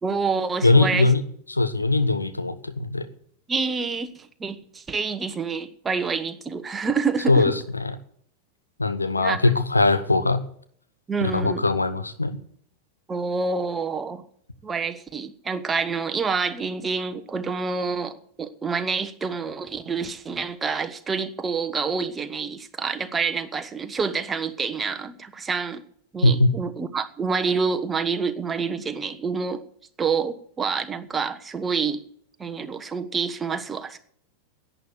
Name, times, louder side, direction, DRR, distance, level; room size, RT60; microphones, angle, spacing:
voice 1, 0.0-1.1 3.5-7.4 9.1-9.4 11.1-11.7 13.1-14.2 14.6-25.8 26.1-29.6 30.0-32.0 32.4-34.0, right 5 dB, 15° right, 8 dB, 1.2 m, -27 dB
voice 2, 0.6-1.2 1.5-3.1 7.3-7.9 8.8-10.4 11.2-12.4 26.2-26.5, left 2 dB, 80° left, 11 dB, 1.1 m, -21 dB
11.0 x 9.1 x 9.6 m, 0.64 s
figure-of-eight pair, 90°, 0 cm